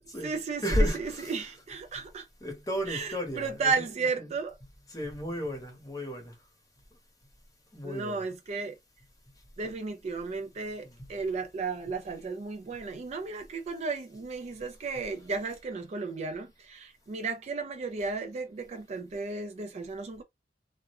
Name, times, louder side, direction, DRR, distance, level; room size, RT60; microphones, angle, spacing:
voice 1, 0.0-2.3 2.9-4.6 7.8-8.7 9.6-20.2, right 4 dB, 40° right, 0.3 m, -34 dB
voice 2, 0.6-1.3 2.4-3.7 4.9-6.3 7.7-8.2, equal, 20° left, 0.8 m, -32 dB
2.3 x 2.1 x 2.8 m
head